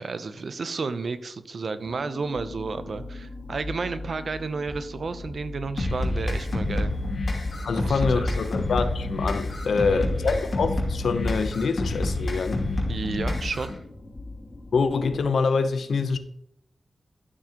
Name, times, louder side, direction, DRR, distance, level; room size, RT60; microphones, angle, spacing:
voice 1, 0.0-6.9 7.8-8.5 9.9-10.2 12.9-13.7, right 4 dB, 65° right, 0.7 m, -32 dB
sound 1, 1.8-15.3, left 2 dB, 35° left, 1.1 m, -41 dB
sound 2, 5.8-13.8, left 2 dB, 55° left, 2.8 m, -28 dB
voice 2, 7.6-12.7 14.7-16.2, left 4 dB, 80° left, 0.8 m, -25 dB
12.5 x 7.3 x 3.0 m
cardioid pair, 65°, 0 cm